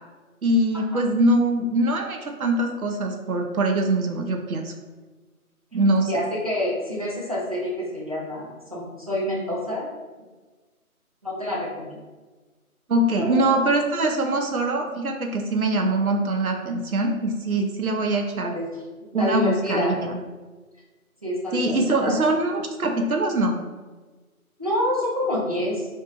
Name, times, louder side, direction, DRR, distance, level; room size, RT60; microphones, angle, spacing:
voice 1, 0.4-4.7 5.7-6.1 12.9-18.5 19.1-20.2 21.5-23.6, right 1 dB, 75° right, 3 dB, 0.8 m, -23 dB
voice 2, 6.1-9.9 11.2-12.0 13.1-13.5 18.5-18.7 19.2-19.9 21.2-22.1 24.6-25.9, left 1 dB, 25° right, -5 dB, 0.7 m, -27 dB
4.8 x 4.3 x 2.5 m, 1.3 s
figure-of-eight pair, 155°, 44 cm